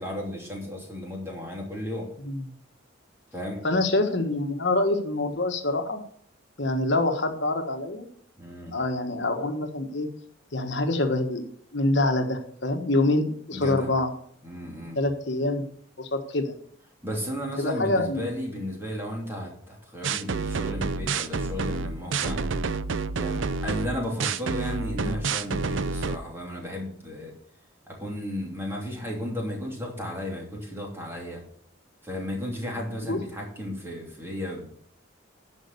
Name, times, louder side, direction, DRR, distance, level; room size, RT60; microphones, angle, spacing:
voice 1, 0.0-2.1 3.3-3.6 8.4-8.7 13.5-13.9 14.4-15.0 17.0-22.4 23.2-27.3 27.9-31.4 32.0-34.7, equal, 10° right, -1 dB, 2.9 m, -34 dB
voice 2, 3.6-6.0 6.6-8.1 8.7-10.1 10.5-14.1 14.9-15.7 16.0-16.5 17.6-18.2 33.0-33.2, left 2 dB, 60° left, 6 dB, 1.4 m, -26 dB
sound 1, 20.0-26.2, right 4 dB, 70° right, 0.6 m, -29 dB
11.5 x 5.4 x 6.8 m, 0.63 s
head